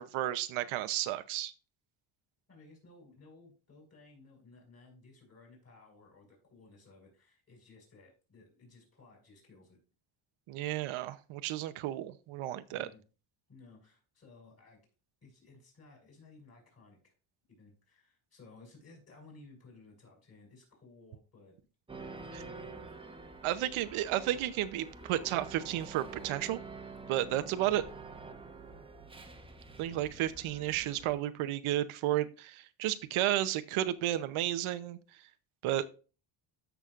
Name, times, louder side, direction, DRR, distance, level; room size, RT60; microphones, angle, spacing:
voice 1, 0.0-1.5 10.5-12.9 23.4-26.6 27.1-27.8 29.8-35.0 35.6-35.8, right 13 dB, 80° right, 12 dB, 0.9 m, -32 dB
voice 2, 2.5-9.8 12.7-13.0 13.5-14.8 15.2-17.1 17.5-21.6 22.1-22.9 27.2-28.0, left 3 dB, 30° left, 0 dB, 5.3 m, -57 dB
sound 1, 21.9-31.1, right 4 dB, 10° right, 1.0 m, -47 dB
13.5 x 6.2 x 2.5 m, 0.34 s
cardioid pair, 150°, 48 cm